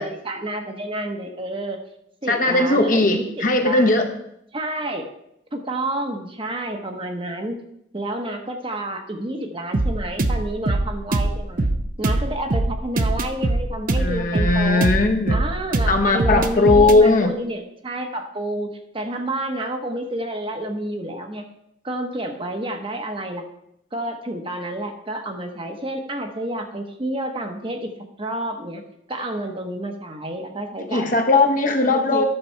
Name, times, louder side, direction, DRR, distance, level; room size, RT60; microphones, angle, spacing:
voice 1, 0.0-1.8 2.2-4.0 4.5-5.1 5.5-7.6 7.9-11.7 12.0-14.9 15.3-21.4 21.8-23.4 23.9-27.9 28.2-28.8 29.1-31.2 31.9-32.2, right 1 dB, 25° right, 4 dB, 1.0 m, -29 dB
voice 2, 2.3-4.1 14.0-15.4 15.9-17.4 30.9-32.2, left 2 dB, 45° left, 3 dB, 1.0 m, -18 dB
sound 1, 9.7-17.0, right 2 dB, 45° right, 0.7 m, -22 dB
11.0 x 6.8 x 4.5 m, 0.77 s
head